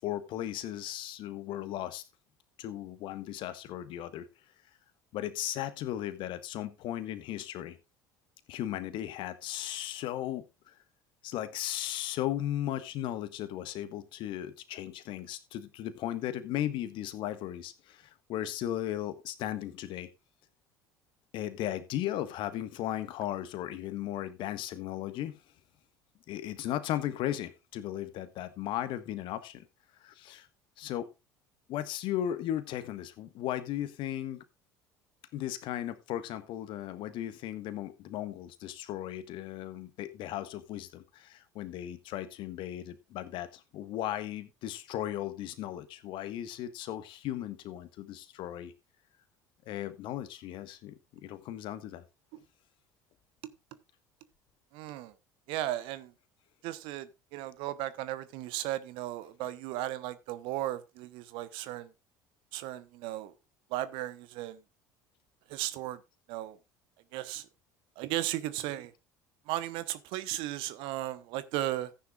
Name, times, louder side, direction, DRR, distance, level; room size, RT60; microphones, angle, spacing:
voice 1, 0.0-2.0 2.6-4.3 5.1-7.8 8.5-10.7 11.2-20.1 21.3-25.4 26.3-29.7 30.0-30.5 30.8-31.1 31.7-34.4 35.3-48.7 49.6-52.0, left 12 dB, 55° left, 1.5 m, -36 dB
voice 2, 54.7-55.1 55.5-56.1 56.6-61.9 62.5-63.3 63.7-64.6 65.5-66.0 66.3-66.6 67.1-67.4 68.0-68.9 69.5-71.9, right 14 dB, 60° right, 1.1 m, -35 dB
14.5 x 9.8 x 2.5 m
hypercardioid pair, 65°, 10 cm